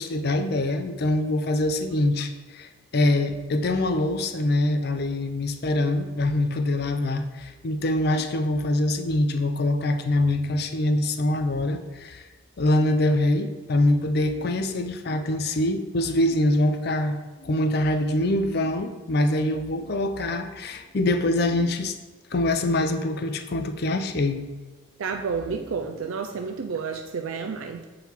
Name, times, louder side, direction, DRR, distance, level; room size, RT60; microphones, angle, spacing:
voice 1, 0.0-12.2 12.6-21.9 22.3-24.5 25.6-25.7, left 1 dB, 50° left, 8 dB, 0.4 m, -24 dB
voice 2, 25.0-27.9, right 5 dB, 80° right, 4 dB, 0.4 m, -30 dB
7.0 x 3.8 x 4.5 m, 1.2 s
head